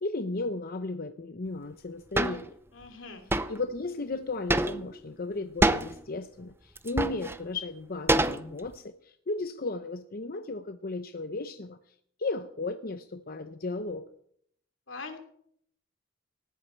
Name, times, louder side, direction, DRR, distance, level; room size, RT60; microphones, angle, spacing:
voice 1, 0.0-2.5 3.5-14.1, left 3 dB, 50° left, 8 dB, 0.8 m, -35 dB
sound 1, 2.2-2.4 3.3-3.6 4.5-5.0 5.6-5.9 6.8-7.4 8.1-8.7, right 2 dB, 10° right, 0.7 m, -25 dB
voice 2, 2.7-3.2 14.9-15.2, left 4 dB, 80° left, 5 dB, 3.0 m, -42 dB
19.0 x 14.5 x 4.5 m, 0.67 s
head